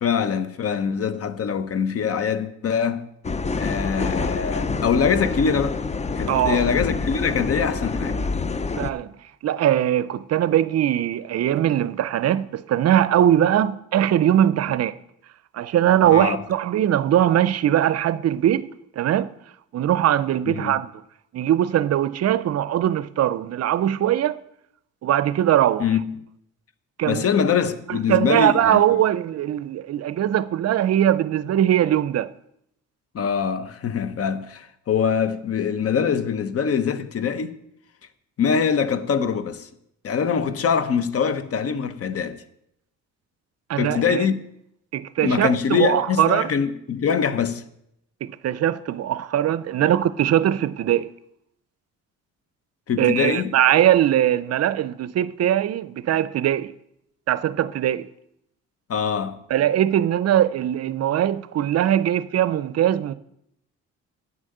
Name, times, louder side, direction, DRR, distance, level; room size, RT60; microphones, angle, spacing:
voice 1, 0.0-3.1 3.5-5.8 6.2-8.2 16.1-16.4 20.5-20.8 25.8-26.2 27.1-28.8 33.1-37.6 38.4-39.7 40.0-42.4 43.8-44.4 45.2-47.6 49.8-49.9 52.9-53.5 58.9-59.4, left 6 dB, 50° left, 0.9 m, -23 dB
sound 1, 3.2-8.9, left 4 dB, 20° left, 0.6 m, -27 dB
voice 2, 6.3-6.6 8.8-9.1 9.4-14.9 15.5-18.7 19.0-19.3 19.7-20.9 21.3-24.4 25.0-25.9 27.0-27.3 27.9-32.3 43.7-44.3 44.9-46.5 48.2-51.1 53.0-56.7 57.3-58.1 59.5-63.1, right 11 dB, 55° right, 0.5 m, -21 dB
9.1 x 6.3 x 7.8 m
cardioid pair, 90°, 30 cm